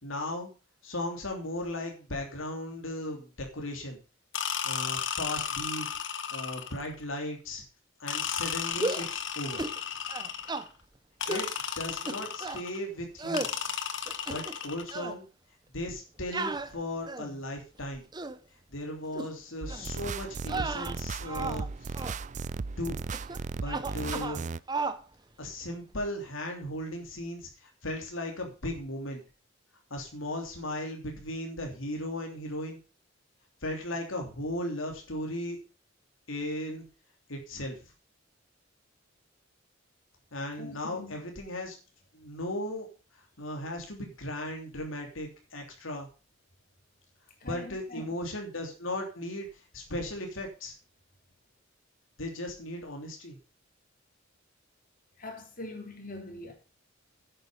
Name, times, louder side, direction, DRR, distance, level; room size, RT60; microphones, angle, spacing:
voice 1, 0.0-0.5 0.8-4.0 4.6-5.9 6.3-7.6 8.0-9.6 11.3-11.5 11.8-13.5 14.3-15.3 15.7-18.0 18.7-21.9 22.8-23.0 23.5-24.4 25.4-29.2 29.9-32.8 33.6-35.6 36.3-36.8 37.3-37.8 40.3-41.7 42.1-42.9 43.4-46.1 47.4-49.5 49.7-50.7 52.2-53.4, left 1 dB, 85° left, 3.1 m, -36 dB
sound 1, 4.3-6.9 8.1-10.7 11.2-12.8 13.3-15.0, left 8 dB, 65° left, 1.4 m, -34 dB
sound 2, 8.7-9.1 9.6-9.8 10.1-10.7 11.3-11.5 12.1-12.6 13.2-13.5 14.1-14.6 14.9-15.2 16.3-17.4 17.9-18.4 19.1-19.3 19.7-19.9 20.4-21.7 21.9-22.2 23.1-23.4 23.6-24.4 24.7-25.0, right 3 dB, 20° right, 0.8 m, -34 dB
sound 3, 19.6-24.6, right 4 dB, 40° right, 0.4 m, -36 dB
voice 2, 40.6-41.2 47.4-48.1 55.2-56.5, left 2 dB, 45° left, 3.7 m, -43 dB
10.0 x 9.1 x 5.1 m
head